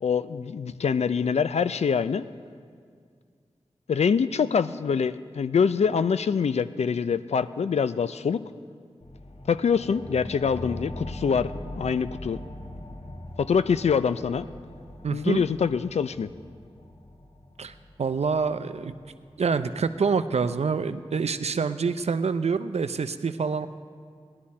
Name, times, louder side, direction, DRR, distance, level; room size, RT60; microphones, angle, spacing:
voice 1, 0.0-2.3 3.9-8.4 9.5-11.5 11.8-12.4 13.4-14.5 15.1-16.3, left 6 dB, 85° left, 13 dB, 0.4 m, -25 dB
sound 1, 9.0-20.1, left 1 dB, 55° left, 1.2 m, -42 dB
voice 2, 15.0-15.4 17.6-18.9 19.4-23.7, right 5 dB, 80° right, 11 dB, 0.5 m, -26 dB
17.5 x 11.5 x 4.2 m, 2.1 s
cardioid pair, 45°, 11 cm